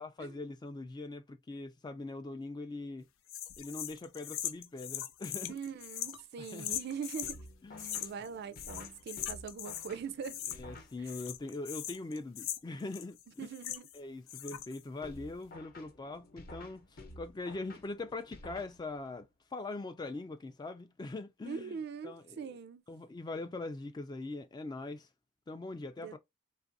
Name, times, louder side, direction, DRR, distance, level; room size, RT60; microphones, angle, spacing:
voice 1, 0.0-3.1 3.6-5.5 6.4-6.7 7.6-8.1 10.6-13.2 13.9-21.7 22.0-22.5 22.9-25.1 25.5-26.2, left 2 dB, 20° left, 0.3 m, -42 dB
sound 1, 3.3-7.4 7.8-8.3 8.5-9.9 10.2-10.8 11.0-14.0 14.3-14.8, left 11 dB, 85° left, 0.4 m, -41 dB
voice 2, 5.5-7.4 7.8-10.4 11.0-11.1 13.4-13.9 21.4-22.8 26.0-26.2, right 6 dB, 55° right, 0.3 m, -42 dB
sound 2, 7.2-11.4 15.0-19.2, left 1 dB, 50° left, 0.8 m, -52 dB
3.2 x 2.5 x 2.5 m
head